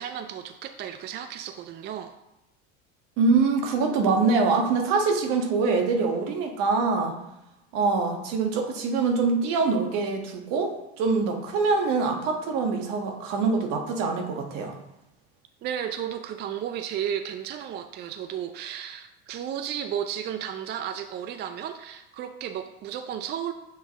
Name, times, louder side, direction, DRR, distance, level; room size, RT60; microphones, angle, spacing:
voice 1, 0.0-2.1 15.6-23.5, right 9 dB, 30° right, 8 dB, 0.4 m, -33 dB
voice 2, 3.2-7.1 7.7-14.8, right 4 dB, 60° right, 3 dB, 1.4 m, -24 dB
7.3 x 4.0 x 3.5 m, 0.90 s
hypercardioid pair, 85°, 37 cm